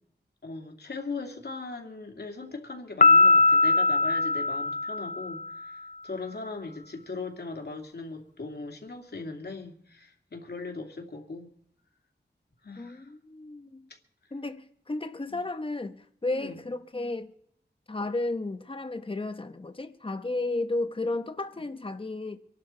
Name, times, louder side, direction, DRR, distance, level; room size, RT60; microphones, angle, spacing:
voice 1, 0.4-11.5 12.6-13.1 15.3-15.4 16.3-16.6 21.5-21.6, left 3 dB, 65° left, 2.7 m, -39 dB
Piano, 3.0-5.6, left 3 dB, 45° left, 0.5 m, -21 dB
voice 2, 12.8-13.9 14.3-17.3 17.9-22.4, left 2 dB, 30° left, 1.1 m, -33 dB
25.5 x 12.0 x 4.5 m
wide cardioid pair, 80°, 18 cm